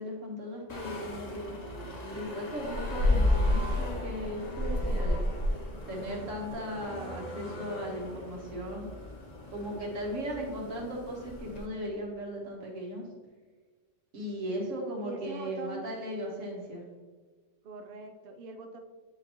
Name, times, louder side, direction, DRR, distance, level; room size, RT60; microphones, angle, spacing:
voice 1, 0.0-1.6 2.1-5.2 5.9-8.9 9.5-13.0 14.1-16.8, equal, 85° right, -1 dB, 1.8 m, -37 dB
sound 1, 0.7-11.7, left 1 dB, 40° left, 0.8 m, -33 dB
voice 2, 15.0-15.9 17.6-18.8, right 4 dB, 60° right, 5 dB, 0.7 m, -43 dB
8.9 x 3.9 x 3.0 m, 1.4 s
omnidirectional pair, 1.3 m